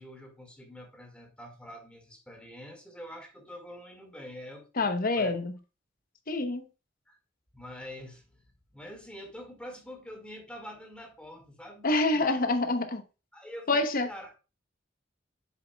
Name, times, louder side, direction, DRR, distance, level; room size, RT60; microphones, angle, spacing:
voice 1, 0.0-4.9 5.2-5.3 7.1-7.2 7.5-8.4 8.7-11.9 12.2-12.3 13.3-14.4, equal, 5° left, 2.0 m, -45 dB
voice 2, 4.8-5.5 6.3-6.6 11.8-13.0 13.7-14.1, left 2 dB, 50° left, 0.9 m, -26 dB
7.7 x 7.0 x 2.3 m
head